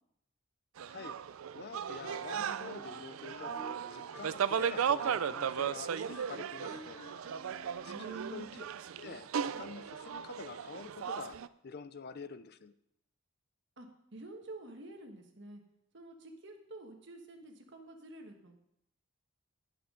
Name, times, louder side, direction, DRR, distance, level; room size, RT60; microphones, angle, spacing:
sound 1, 0.8-11.5, right 7 dB, 85° right, 0.4 m, -36 dB
voice 1, 1.5-3.6 3.9-7.0 7.8-8.6 8.9-12.7, left 5 dB, 50° left, 14 dB, 0.5 m, -47 dB
Wind instrument woodwind instrument, 2.7-8.6, left 2 dB, 25° left, 2.3 m, -53 dB
voice 2, 7.9-8.5 13.8-13.9 14.1-15.6 15.9-18.7, right 2 dB, 60° right, 4 dB, 1.4 m, -48 dB
18.0 x 6.0 x 3.8 m, 0.78 s
head